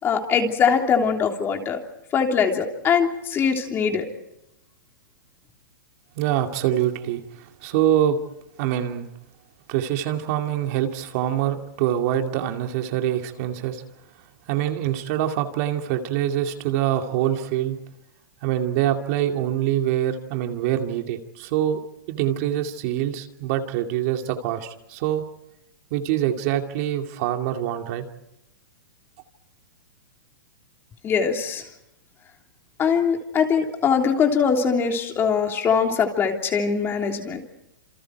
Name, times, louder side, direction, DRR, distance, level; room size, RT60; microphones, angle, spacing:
voice 1, 0.0-1.8 2.1-4.1 31.0-31.6 32.8-37.4, left 6 dB, 20° left, 3 dB, 3.2 m, -22 dB
voice 2, 6.2-8.2 8.6-9.1 9.7-13.8 14.5-17.8 18.4-21.8 22.1-25.2 25.9-28.1, right 11 dB, 45° right, 4 dB, 2.4 m, -25 dB
29.0 x 27.5 x 4.7 m, 0.84 s
hypercardioid pair, 145°, 11 cm